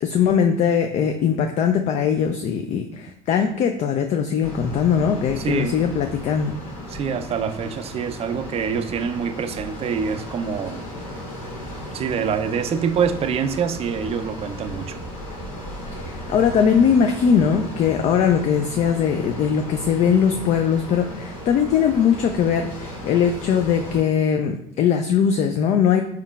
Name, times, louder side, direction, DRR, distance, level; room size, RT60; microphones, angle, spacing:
voice 1, 0.0-6.6 16.0-26.0, left 7 dB, 40° left, 5 dB, 0.4 m, -20 dB
sound 1, 4.4-24.0, equal, 85° left, 1.1 m, -35 dB
voice 2, 5.4-5.8 6.9-10.8 11.9-15.1, right 7 dB, 35° right, 9 dB, 0.4 m, -25 dB
4.4 x 3.6 x 2.3 m, 0.73 s
hypercardioid pair, 60°, 18 cm